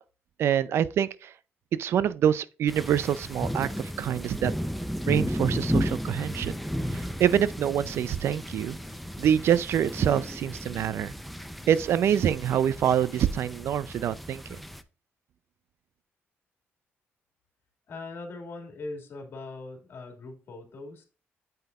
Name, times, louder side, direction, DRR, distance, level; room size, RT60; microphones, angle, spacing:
voice 1, 0.4-1.3 1.8-4.5 5.1-6.5 7.2-8.8 9.2-11.1 11.7-14.6, right 9 dB, 65° right, 0.5 m, -25 dB
sound 1, 2.7-14.8, equal, ahead, 0.6 m, -34 dB
voice 2, 17.9-21.1, left 3 dB, 55° left, 2.3 m, -40 dB
7.8 x 5.4 x 2.4 m
cardioid pair, 105°, 5 cm